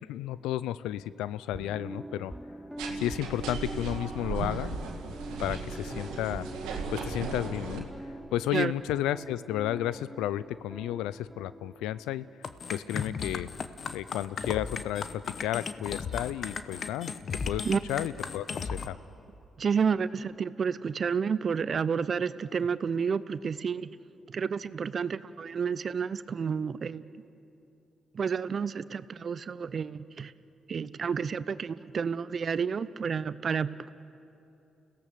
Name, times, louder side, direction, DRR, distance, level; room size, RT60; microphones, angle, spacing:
voice 1, 0.1-2.3 2.9-4.7 5.4-6.5 6.9-7.9 8.3-12.3 12.7-13.5 13.9-17.1 17.5-19.0, left 13 dB, 85° left, 17 dB, 0.4 m, -32 dB
sound 1, 1.5-12.9 13.2-13.3, right 1 dB, 5° right, 0.9 m, -43 dB
sound 2, 2.8-7.8, right 5 dB, 85° right, 2.1 m, -37 dB
sound 3, 12.4-18.9, left 5 dB, 60° left, 1.0 m, -35 dB
voice 2, 19.6-23.9 24.3-27.1 28.1-30.3 30.7-33.9, right 6 dB, 55° right, 16 dB, 0.7 m, -30 dB
30.0 x 17.0 x 6.9 m, 2.8 s
hypercardioid pair, 50°, 0 cm